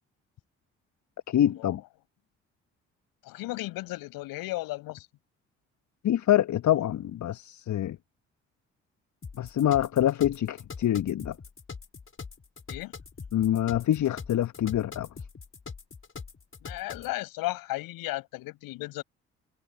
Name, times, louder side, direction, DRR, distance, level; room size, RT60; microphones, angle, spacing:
voice 1, 1.3-1.8 6.0-8.0 9.4-11.4 13.3-15.1, left 11 dB, 50° left, 1.5 m, -25 dB
voice 2, 3.2-5.1 12.7-12.9 16.6-19.0, left 19 dB, 70° left, 6.6 m, -35 dB
sound 1, 9.2-17.1, left 5 dB, 35° left, 6.4 m, -43 dB
figure-of-eight pair, 40°, 36 cm